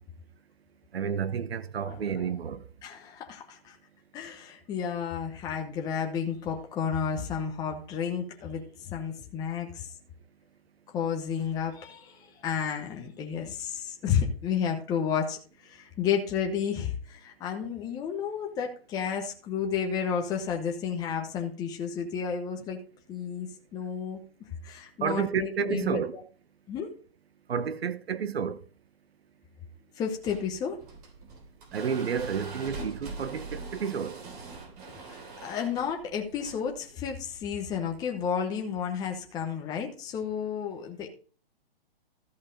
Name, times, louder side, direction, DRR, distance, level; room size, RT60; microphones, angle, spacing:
voice 1, 0.9-2.6 25.0-26.2 27.5-28.6 31.7-34.2, right 7 dB, 80° right, 1.0 m, -30 dB
voice 2, 1.8-2.2 2.8-3.8 4.1-9.9 10.9-22.8 23.1-24.2 24.6-26.0 26.7-26.9 30.0-30.8 35.0-41.1, left 7 dB, 10° left, 0.9 m, -32 dB
sound 1, 30.1-38.0, right 3 dB, 40° right, 3.3 m, -43 dB
13.5 x 5.2 x 5.1 m
hypercardioid pair, 150°, 31 cm